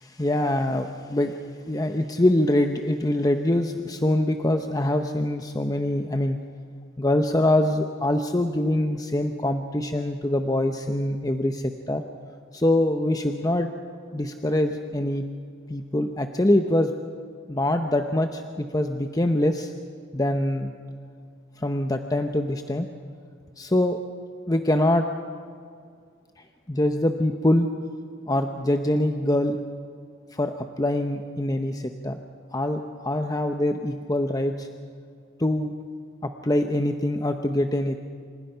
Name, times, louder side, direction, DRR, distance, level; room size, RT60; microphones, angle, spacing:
voice 1, 0.0-1.3 1.7-6.4 7.0-12.0 12.5-13.7 14.1-15.3 15.7-16.9 17.5-19.7 20.1-20.7 21.6-22.9 23.6-24.0 24.5-25.1 26.7-27.7 28.3-29.6 30.3-32.2 32.5-34.7 35.4-35.7 36.2-38.0, left 1 dB, 20° left, 6 dB, 0.8 m, -24 dB
28.0 x 26.5 x 5.7 m, 2.2 s
head